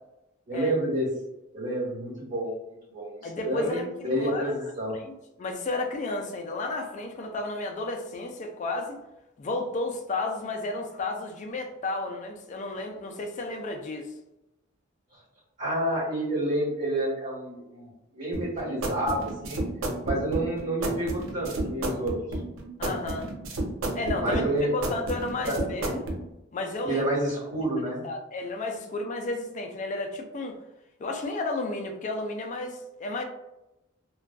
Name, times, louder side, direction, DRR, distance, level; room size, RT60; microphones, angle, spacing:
voice 1, 0.5-1.1 1.5-2.5 2.9-4.9 15.6-19.6 20.0-22.2 24.2-24.7 25.4-25.5 26.8-28.0, right 1 dB, 50° right, -7 dB, 1.2 m, -29 dB
voice 2, 3.2-4.5 4.9-9.0 9.4-14.1 22.8-23.3 23.9-24.4 24.7-26.1 26.5-27.0 28.0-30.6 31.0-33.2, left 2 dB, 40° left, 4 dB, 0.3 m, -32 dB
sound 1, 18.3-26.2, right 1 dB, 90° right, 0.5 m, -31 dB
2.5 x 2.2 x 2.2 m, 0.93 s
head